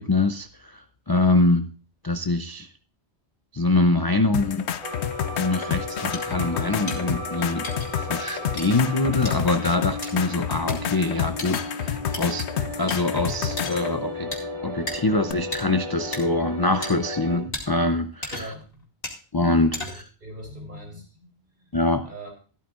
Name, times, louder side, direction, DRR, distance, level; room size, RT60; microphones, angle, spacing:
voice 1, 0.0-1.7 2.0-2.7 3.5-4.7 5.4-12.5 12.8-14.3 14.6-18.5 19.3-20.0 21.7-22.1, left 2 dB, 30° left, 8 dB, 0.4 m, -24 dB
sound 1, 4.3-13.9 15.3-15.4, left 9 dB, 80° left, 1.0 m, -30 dB
sound 2, 4.8-17.4, left 1 dB, 30° right, 3.7 m, -35 dB
sound 3, 6.1-6.2 6.9-7.0 7.6-7.9 8.6-8.7 9.2-9.4 10.0-10.1 10.7-10.8 11.4-11.7 12.1-12.2 12.9-13.0 13.6-13.8 14.3-14.4 14.9-15.0 15.5-15.6 16.1-16.2 16.8-16.9 17.5-17.6 18.2-18.6 19.0-19.2 19.7-20.1, left 2 dB, 60° left, 2.6 m, -33 dB
voice 2, 18.3-18.8 19.8-21.7 22.0-22.3, right 1 dB, 45° right, 1 dB, 4.0 m, -41 dB
14.0 x 12.5 x 2.5 m, 0.37 s
omnidirectional pair, 1.1 m